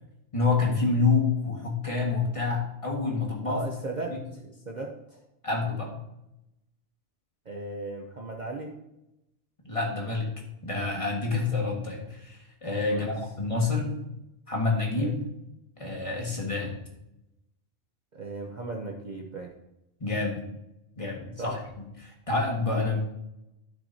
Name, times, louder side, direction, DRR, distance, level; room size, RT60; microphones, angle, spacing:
voice 1, 0.3-3.6 4.1-4.2 5.4-5.9 9.6-10.3 10.6-13.9 14.5-15.2 15.8-16.7 20.0-20.4 21.0-21.6 22.0-23.0, left 3 dB, 25° left, -2 dB, 1.8 m, -27 dB
voice 2, 3.4-5.2 7.4-8.7 12.9-13.1 15.0-15.1 18.1-19.5 21.4-21.6, right 2 dB, 40° right, 1 dB, 0.9 m, -37 dB
12.0 x 6.5 x 2.8 m, 0.88 s
omnidirectional pair, 1.3 m